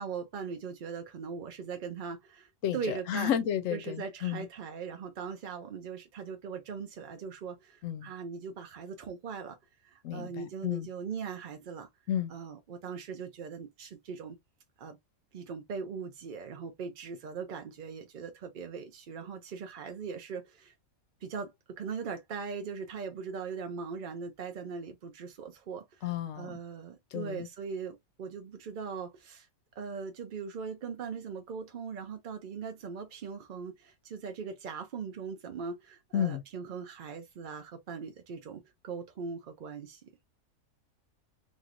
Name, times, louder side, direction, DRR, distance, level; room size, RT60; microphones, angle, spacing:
voice 1, 0.0-3.4 3.7-9.6 9.8-11.9 12.3-14.4 14.8-15.0 15.3-20.7 21.2-29.5 29.7-40.1, right 5 dB, 65° right, 0.5 m, -40 dB
voice 2, 2.6-4.5 7.8-8.1 10.0-10.9 12.1-12.3 26.0-26.6 27.1-27.5 36.1-36.4, left 10 dB, 70° left, 1.0 m, -32 dB
3.0 x 2.7 x 2.4 m
omnidirectional pair, 1.5 m